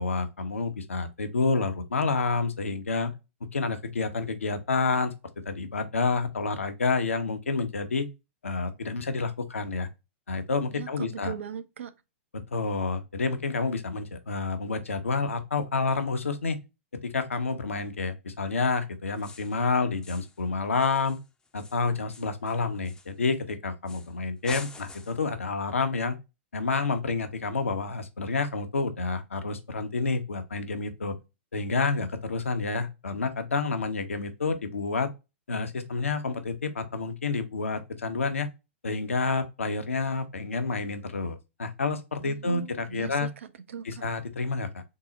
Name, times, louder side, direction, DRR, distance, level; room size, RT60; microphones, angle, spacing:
voice 1, 0.0-3.1 3.5-5.1 5.5-8.1 8.4-9.9 10.3-11.3 12.5-16.6 17.0-21.2 21.5-26.2 26.5-31.1 31.5-35.1 35.5-38.5 38.8-43.3 43.8-44.8, left 4 dB, 85° left, 0.6 m, -29 dB
voice 2, 10.7-11.9 42.2-43.9, right 8 dB, 75° right, 0.5 m, -39 dB
sound 1, 19.2-19.6 20.0-20.4 20.7-23.4 23.9-24.1 24.4-25.3, left 3 dB, 10° left, 0.4 m, -46 dB
3.7 x 2.0 x 3.8 m
hypercardioid pair, 110°, 7 cm